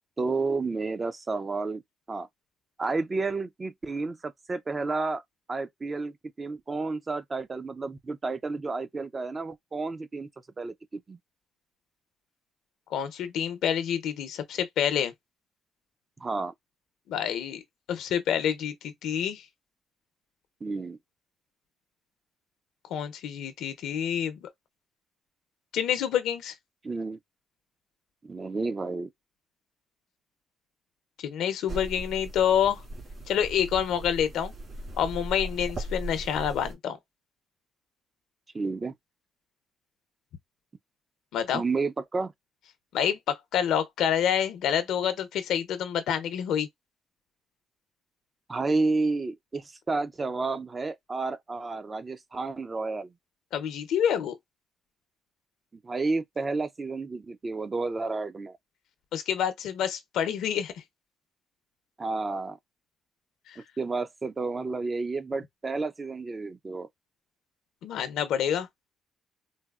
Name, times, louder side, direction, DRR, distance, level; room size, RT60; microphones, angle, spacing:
voice 1, 0.2-1.8 2.1-2.3 2.8-5.2 5.5-10.3 10.6-11.2 16.2-16.5 20.6-21.0 26.8-27.2 28.2-29.1 38.5-38.9 41.5-42.3 48.5-53.1 55.8-58.6 62.0-62.6 63.8-66.9, right 3 dB, 30° right, 0.4 m, -31 dB
voice 2, 12.9-15.1 17.1-17.6 17.9-19.4 22.9-24.5 25.7-26.5 31.2-32.8 33.3-34.5 35.0-37.0 41.3-41.6 42.9-46.7 53.5-54.3 59.1-60.7 63.5-63.6 67.8-68.7, left 9 dB, 80° left, 0.6 m, -27 dB
sound 1, 31.7-36.7, right 1 dB, 45° right, 1.9 m, -38 dB
4.0 x 2.0 x 2.3 m
cardioid pair, 90°, 0 cm